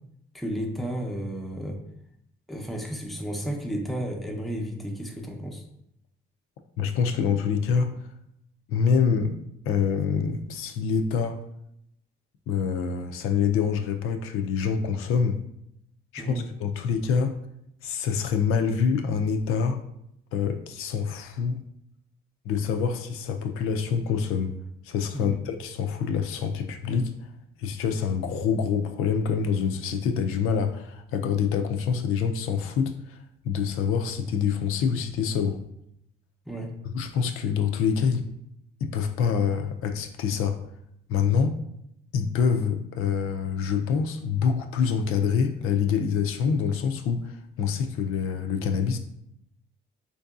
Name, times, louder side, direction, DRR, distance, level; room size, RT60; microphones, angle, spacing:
voice 1, 0.3-1.8 2.5-5.6 16.2-16.4 25.1-25.4 36.5-36.7, equal, ahead, 1 dB, 0.5 m, -32 dB
voice 2, 6.8-7.9 8.7-9.4 9.7-11.4 12.5-15.4 16.1-17.3 17.8-19.8 20.3-21.6 22.5-24.5 24.8-27.1 27.6-33.2 33.4-35.6 36.8-38.2 38.8-40.6 41.1-41.5 42.1-49.0, left 6 dB, 85° left, 6 dB, 0.4 m, -26 dB
4.5 x 2.7 x 2.3 m, 0.77 s
cardioid pair, 105°, 21 cm